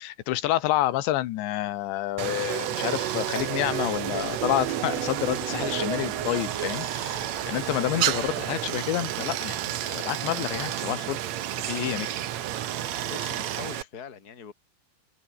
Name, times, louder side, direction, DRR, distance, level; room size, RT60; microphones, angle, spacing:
voice 1, 0.0-11.2 11.6-12.1, left 15 dB, 80° left, 3.4 m, -29 dB
Stream, 2.2-13.8, right 12 dB, 85° right, 1.5 m, -31 dB
sound 1, 2.5-7.6, right 10 dB, 65° right, 1.6 m, -33 dB
sound 2, 3.3-8.5, left 10 dB, 55° left, 2.3 m, -48 dB
voice 2, 13.1-14.5, left 7 dB, 25° left, 2.7 m, -42 dB
omnidirectional pair, 5.1 m